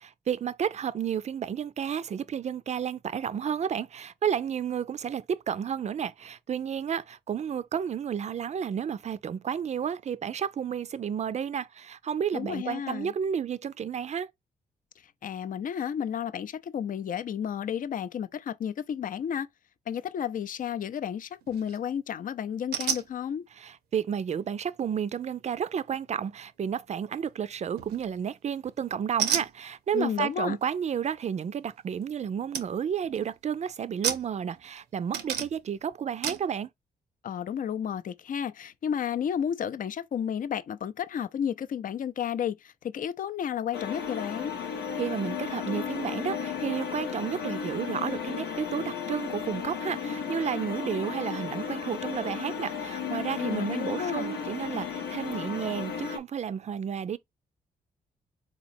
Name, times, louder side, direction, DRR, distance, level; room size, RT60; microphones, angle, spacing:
voice 1, 0.0-14.3 23.6-36.7 45.0-57.2, right 8 dB, 45° right, 0.4 m, -31 dB
voice 2, 12.3-13.1 15.0-19.5 19.9-23.4 29.9-30.6 37.2-44.6 53.4-54.4, left 8 dB, 55° left, 0.4 m, -32 dB
sound 1, 21.4-21.8 22.7-23.1 27.8-28.2 29.2-29.5 32.0-32.1 32.5-32.7 33.0-33.4 34.0-34.8 35.1-35.7 36.2-36.5, right 8 dB, 85° right, 0.7 m, -31 dB
sound 2, 43.7-56.2, left 7 dB, 90° left, 0.7 m, -34 dB
4.0 x 3.0 x 2.5 m
cardioid pair, 65°, 17 cm